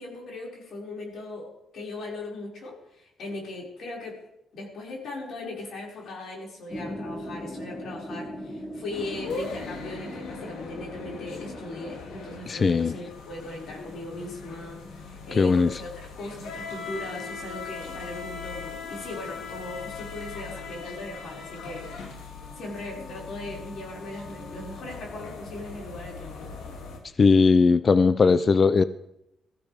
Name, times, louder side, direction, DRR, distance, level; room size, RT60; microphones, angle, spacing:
voice 1, 0.0-4.2 4.5-26.5, left 2 dB, 65° left, -2 dB, 5.6 m, -39 dB
sound 1, 6.7-12.0, equal, 15° left, 2.1 m, -39 dB
sound 2, 8.9-27.0, left 4 dB, 85° left, 2.6 m, -40 dB
voice 2, 12.5-12.9 15.4-15.7 27.2-28.8, left 4 dB, 40° left, 14 dB, 0.5 m, -19 dB
19.5 x 14.5 x 3.5 m, 0.84 s
cardioid pair, 90°, 0 cm